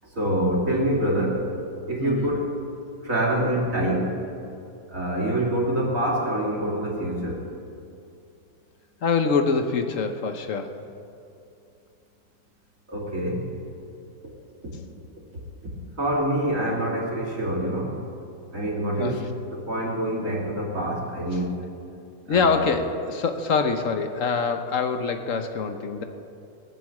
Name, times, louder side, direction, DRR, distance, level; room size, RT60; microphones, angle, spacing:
voice 1, 0.0-1.5 1.9-2.6 3.0-4.1 4.9-7.5 12.9-13.5 14.6-15.0 16.0-18.0 18.5-19.2 19.5-21.5 22.3-22.6, right 1 dB, 45° right, -2 dB, 3.0 m, -26 dB
voice 2, 2.0-2.4 9.0-10.8 19.0-19.3 22.3-26.0, left 5 dB, 55° left, 7 dB, 1.1 m, -25 dB
18.0 x 7.6 x 8.5 m, 2.6 s
omnidirectional pair, 1.9 m